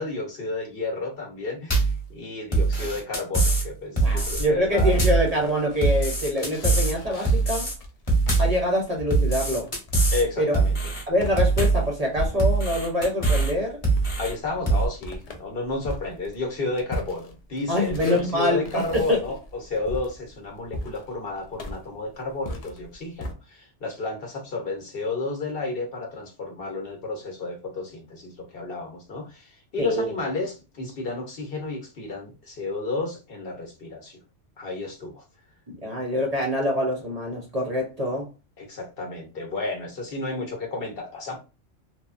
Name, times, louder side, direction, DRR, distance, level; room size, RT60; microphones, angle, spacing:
voice 1, 0.0-4.9 10.1-10.8 14.2-34.2 34.6-35.2 38.6-41.4, left 3 dB, 55° left, 0.9 m, -32 dB
sound 1, 1.7-2.0 2.5-3.7 4.0-4.4 4.8-5.3 5.8-6.9 7.2-7.7 8.1-8.6 9.1-10.2 10.5-11.0 11.4-11.9 12.4-13.5 13.8-14.3 14.7-14.9, right 3 dB, 30° left, 1.0 m, -22 dB
voice 2, 4.0-7.7 8.4-9.7 10.4-10.5 11.1-13.8 17.7-18.8 19.1-19.2 29.8-30.1 35.7-38.3, left 1 dB, 40° right, 0.6 m, -25 dB
sound 2, 4.1-12.8 13.2-23.3, equal, 70° left, 0.3 m, -38 dB
3.1 x 2.1 x 2.4 m
omnidirectional pair, 1.2 m